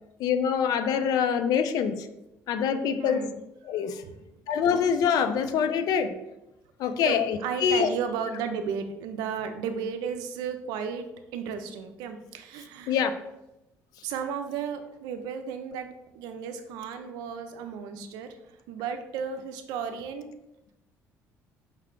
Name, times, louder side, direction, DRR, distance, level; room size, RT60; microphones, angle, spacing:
voice 1, 0.2-2.1 2.5-3.3 3.7-4.0 4.5-6.1 6.8-7.9 12.9-13.1, left 7 dB, 70° left, 0.4 m, -25 dB
voice 2, 3.0-3.4 3.7-4.4 6.8-13.0 14.0-18.4 18.7-20.3, right 6 dB, 85° right, 0.4 m, -34 dB
4.7 x 2.2 x 3.6 m
supercardioid pair, 80°, 7 cm